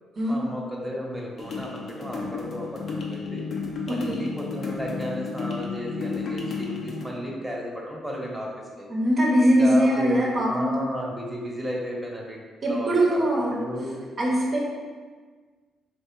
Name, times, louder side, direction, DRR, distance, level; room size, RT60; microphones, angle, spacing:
voice 1, 0.3-3.5 3.9-8.5 8.8-8.9 9.6-12.4 12.7-13.2 13.5-14.0, equal, 10° right, -2 dB, 1.0 m, -33 dB
sound 1, 1.4-7.1, left 4 dB, 55° left, 0.7 m, -32 dB
voice 2, 3.9-4.2 8.9-10.7 12.6-13.6 14.2-14.6, equal, 50° right, -5 dB, 0.8 m, -21 dB
3.3 x 3.2 x 4.5 m, 1.5 s
cardioid pair, 90°, 0 cm